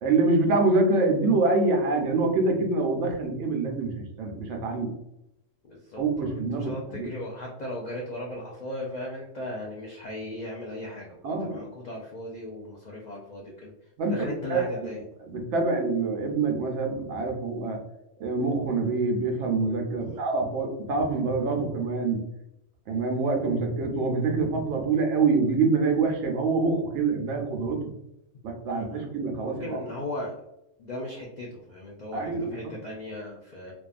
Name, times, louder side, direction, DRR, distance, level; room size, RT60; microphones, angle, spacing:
voice 1, 0.0-4.9 6.0-7.1 11.2-11.6 14.0-14.6 15.3-17.8 18.2-22.2 22.9-27.9 28.4-29.8 32.1-32.7, right 3 dB, 70° right, 3 dB, 0.9 m, -25 dB
voice 2, 5.6-13.7 14.1-15.0 20.0-20.2 28.7-29.1 29.4-30.3 30.8-33.7, left 1 dB, 90° left, -2 dB, 0.3 m, -37 dB
2.6 x 2.3 x 2.4 m, 0.85 s
omnidirectional pair, 1.3 m